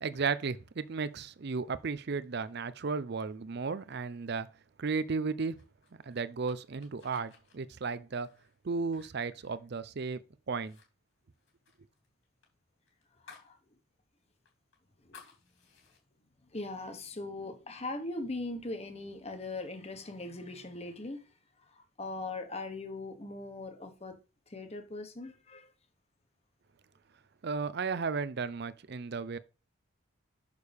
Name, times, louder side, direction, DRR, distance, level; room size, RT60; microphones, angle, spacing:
voice 1, 0.0-4.5 4.8-5.5 6.1-8.3 8.6-10.8 27.4-29.4, right 4 dB, 50° right, 0.5 m, -34 dB
sound 1, 5.6-10.2 10.5-10.9 11.1-13.6 13.9-14.0 14.4-16.0, left 5 dB, 65° left, 2.8 m, -58 dB
voice 2, 13.3-13.6 15.0-15.2 16.5-21.2 21.7-24.2 24.5-25.7, left 2 dB, 30° left, 1.2 m, -40 dB
6.6 x 6.5 x 3.5 m
head